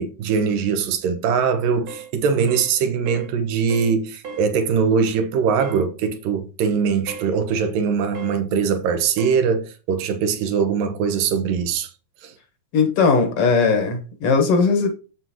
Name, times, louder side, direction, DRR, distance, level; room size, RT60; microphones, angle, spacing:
voice 1, 0.0-11.9 12.2-12.3, right 6 dB, 75° right, 2.7 m, -22 dB
sound 1, 1.9-2.1 2.5-2.7 3.1-3.3 3.7-3.9 4.2-4.5 5.6-5.8 7.1-7.3 8.1-8.4 9.2-9.4, right 5 dB, 50° right, 2.5 m, -36 dB
voice 2, 12.7-14.9, left 4 dB, 55° left, 1.8 m, -18 dB
7.8 x 7.5 x 3.0 m
omnidirectional pair, 4.2 m